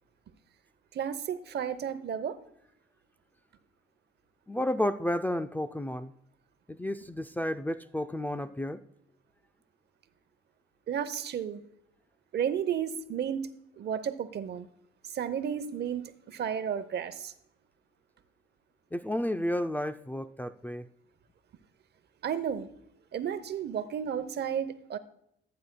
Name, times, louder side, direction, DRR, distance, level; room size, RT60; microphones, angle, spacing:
voice 1, 0.9-2.4 10.9-11.6 12.3-13.5 13.8-14.7 15.0-17.3 22.2-22.7 23.1-25.0, right 8 dB, 55° right, 12 dB, 0.8 m, -32 dB
voice 2, 4.5-6.1 6.7-8.8 18.9-20.9, left 1 dB, 10° left, 7 dB, 0.4 m, -32 dB
14.5 x 9.5 x 2.2 m, 0.76 s
cardioid pair, 90°, 20 cm